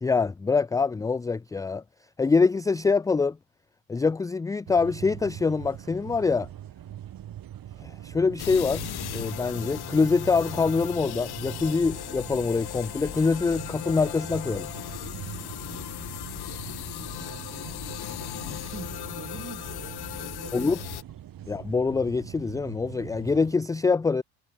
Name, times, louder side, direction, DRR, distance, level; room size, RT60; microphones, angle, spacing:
voice 1, 0.0-1.8 2.2-3.4 3.9-6.5 7.8-8.8 9.1-14.7 20.5-20.8 21.5-24.2, left 4 dB, 10° left, 0.4 m, -25 dB
sound 1, 4.7-23.6, right 11 dB, 45° right, 2.5 m, -42 dB
sound 2, 8.4-21.0, left 14 dB, 50° left, 2.6 m, -37 dB
voice 2, 16.9-21.0 21.4-21.6, right 6 dB, 25° right, 4.0 m, -46 dB
hypercardioid pair, 70°, 50 cm